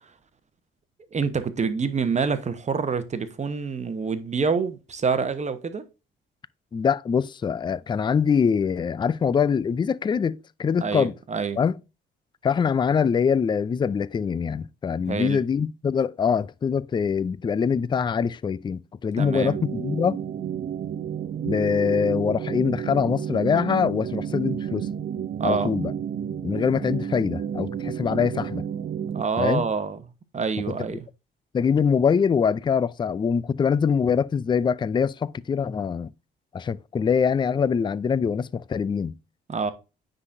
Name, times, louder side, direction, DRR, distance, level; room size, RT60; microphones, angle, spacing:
voice 1, 1.1-5.8 10.8-11.6 15.1-15.4 19.2-19.6 25.4-25.7 29.1-30.0 30.3-31.1 39.5-39.7, right 5 dB, 35° right, 1.0 m, -26 dB
voice 2, 6.7-11.1 11.6-11.8 12.4-20.2 21.4-24.9 25.4-25.9 26.4-28.6 29.4-29.6 31.5-36.1 36.5-39.1, left 6 dB, 25° left, 0.3 m, -24 dB
sound 1, 19.3-29.2, right 9 dB, 50° right, 0.6 m, -31 dB
9.6 x 3.9 x 2.6 m
cardioid pair, 90°, 20 cm